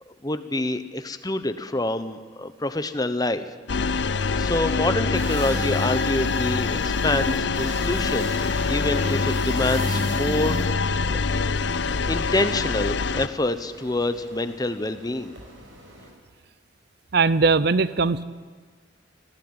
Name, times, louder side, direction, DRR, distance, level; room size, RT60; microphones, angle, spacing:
voice 1, 0.2-3.4 3.9-11.4 12.1-15.3, left 2 dB, 20° left, 10 dB, 0.9 m, -27 dB
sound 1, 3.7-13.3, left 4 dB, 60° left, 0.6 m, -25 dB
sound 2, 5.1-16.1, right 2 dB, 75° right, 5.7 m, -39 dB
voice 2, 17.1-18.2, right 4 dB, 55° right, 16 dB, 0.6 m, -20 dB
20.0 x 15.5 x 8.9 m, 1.5 s
head